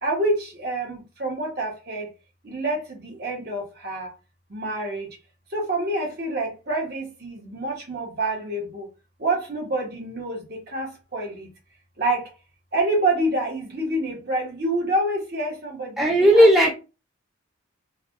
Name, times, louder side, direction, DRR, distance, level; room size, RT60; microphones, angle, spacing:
voice 1, 0.0-2.1 2.4-4.1 4.5-5.1 5.5-8.9 9.2-11.5 12.0-12.3 12.7-16.5, right 1 dB, 50° right, 1.2 m, -27 dB
voice 2, 16.0-16.7, equal, ahead, 0.4 m, -15 dB
3.3 x 2.3 x 2.5 m
head